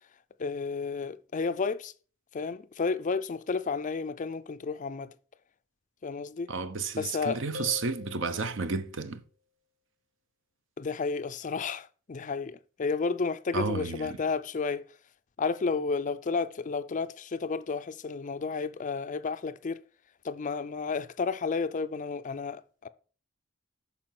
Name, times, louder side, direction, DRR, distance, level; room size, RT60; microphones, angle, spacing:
voice 1, 0.4-1.9 2.3-5.1 6.0-6.5 6.9-7.4 10.8-14.8 15.4-19.8 20.2-22.9, left 4 dB, 40° left, 0.4 m, -32 dB
voice 2, 6.5-9.2 13.5-14.2, right 4 dB, 65° right, 0.9 m, -32 dB
sound 1, 7.5-9.1, left 5 dB, 80° right, 1.2 m, -44 dB
8.7 x 5.7 x 5.9 m
head